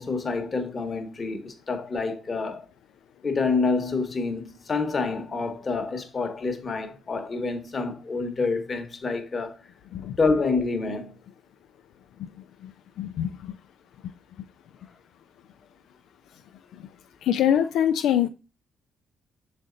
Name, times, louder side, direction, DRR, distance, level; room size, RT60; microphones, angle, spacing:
voice 1, 0.0-2.6 3.2-9.6 10.2-11.1, left 4 dB, 35° left, 1.1 m, -27 dB
voice 2, 13.0-13.5 17.2-18.3, left 10 dB, 80° left, 0.3 m, -23 dB
6.3 x 4.1 x 3.8 m
cardioid pair, 90°, 0 cm